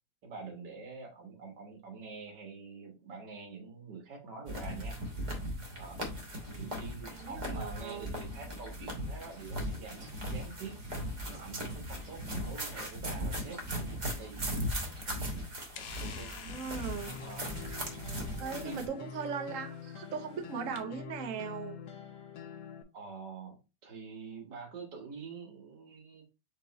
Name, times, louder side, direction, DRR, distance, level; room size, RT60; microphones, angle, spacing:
voice 1, 0.2-5.0 5.8-6.1 6.4-10.8 11.3-14.4 15.8-16.4 17.2-17.5 18.6-18.8 22.9-26.2, right 4 dB, 80° right, 1.9 m, -46 dB
sound 1, 4.5-18.9, equal, 30° right, 1.1 m, -38 dB
voice 2, 7.1-8.1 16.4-17.1 18.4-21.8, right 6 dB, 60° right, 0.9 m, -39 dB
sound 2, 14.0-20.8, left 7 dB, 60° left, 1.1 m, -52 dB
sound 3, 17.1-22.8, left 7 dB, 80° left, 1.3 m, -46 dB
4.6 x 2.9 x 3.9 m
omnidirectional pair, 1.8 m